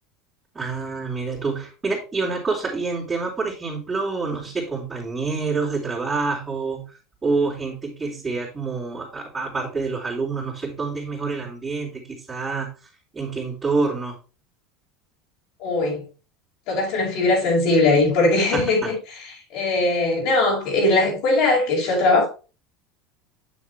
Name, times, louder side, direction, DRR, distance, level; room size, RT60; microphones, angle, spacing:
voice 1, 0.5-6.9 7.2-12.7 13.1-14.2 18.5-18.9, right 4 dB, 20° right, 3.8 m, -27 dB
voice 2, 15.6-16.1 16.7-19.0 19.5-22.3, left 2 dB, 60° left, 5.6 m, -20 dB
8.9 x 7.1 x 3.4 m
hypercardioid pair, 80°, 0 cm